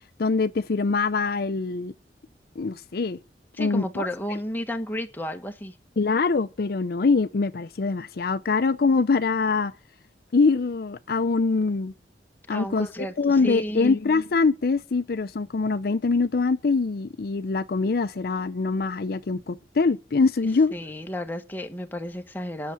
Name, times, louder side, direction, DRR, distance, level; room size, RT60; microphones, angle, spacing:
voice 1, 0.2-1.9 2.6-3.2 3.6-4.1 6.0-9.7 10.3-11.9 12.5-12.9 13.2-20.7, left 4 dB, 60° left, 0.5 m, -23 dB
voice 2, 3.5-5.7 12.5-14.0 20.7-22.7, equal, 10° left, 1.2 m, -32 dB
10.0 x 6.7 x 8.4 m
head